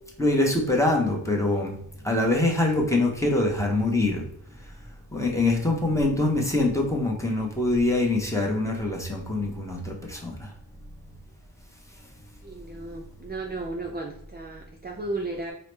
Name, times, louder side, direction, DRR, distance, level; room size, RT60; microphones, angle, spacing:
voice 1, 0.2-4.3 5.1-10.5, left 2 dB, 5° left, -1 dB, 0.7 m, -24 dB
voice 2, 12.4-15.5, right 2 dB, 25° right, 1 dB, 0.4 m, -34 dB
4.6 x 2.0 x 3.2 m, 0.69 s
wide cardioid pair, 95°, 42 cm